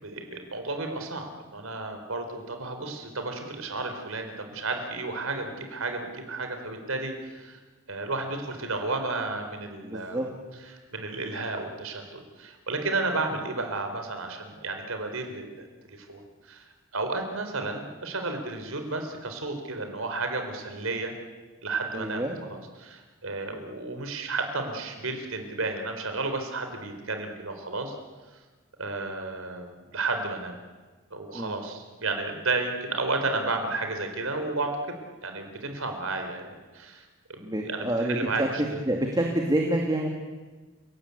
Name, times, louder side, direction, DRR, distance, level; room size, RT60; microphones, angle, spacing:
voice 1, 0.0-7.6 7.9-10.2 10.9-16.6 16.9-21.1 21.6-28.0 28.8-30.6 31.1-35.0 35.2-37.0 37.3-38.8, right 3 dB, 75° right, 5 dB, 4.0 m, -32 dB
voice 2, 9.8-10.3 21.9-22.4 23.5-23.7 31.3-31.5 37.4-38.5 38.9-40.1, right 1 dB, 20° right, 1 dB, 2.3 m, -27 dB
30.0 x 18.5 x 8.4 m, 1.3 s
head